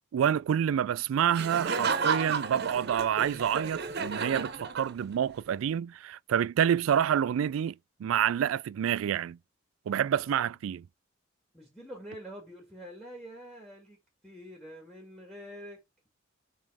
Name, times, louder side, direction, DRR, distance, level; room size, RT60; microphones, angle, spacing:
voice 1, 0.1-7.7 8.0-9.4 9.9-10.8, right 9 dB, 85° right, 0.3 m, -28 dB
Laughter, 1.3-5.3, right 5 dB, 55° right, 0.9 m, -32 dB
voice 2, 10.2-10.5 11.5-15.8, equal, ahead, 1.8 m, -46 dB
7.4 x 3.1 x 4.8 m
head